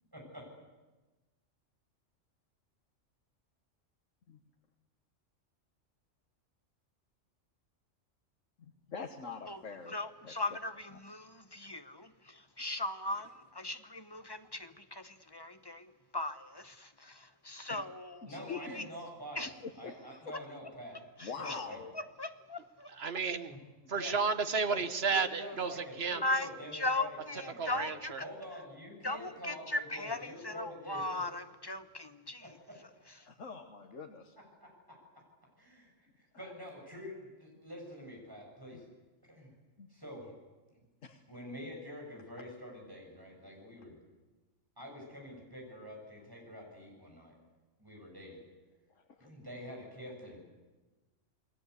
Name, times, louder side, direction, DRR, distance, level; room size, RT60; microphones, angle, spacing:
voice 1, 0.1-0.4 18.2-19.5 19.8-21.0 21.4-21.8 23.9-24.1 24.7-24.8 25.1-25.8 26.0-27.9 28.2-31.2 32.4-32.5 34.6-34.7 35.6-35.9 36.2-38.8 39.3-39.5 39.9-40.3 41.3-44.0 44.8-47.3 47.8-48.4 49.2-50.4, equal, 15° right, 7.8 m, -46 dB
voice 2, 8.9-10.0 10.2-10.3 17.7-17.8 18.2-18.9 19.8-19.9 21.2-21.9 33.2-34.4 36.3-36.5 39.8-39.9 41.0-41.2 49.0-49.3, left 5 dB, 75° left, 1.7 m, -44 dB
voice 3, 9.5-18.9 19.3-19.5 21.2-21.6 21.9-22.9 24.0-24.2 26.2-28.2 29.0-32.6 33.1-33.3, left 2 dB, 20° left, 1.0 m, -39 dB
voice 4, 23.0-23.6 23.9-26.2 27.6-28.2, right 5 dB, 55° right, 1.5 m, -32 dB
28.5 x 20.0 x 8.3 m
omnidirectional pair, 1.3 m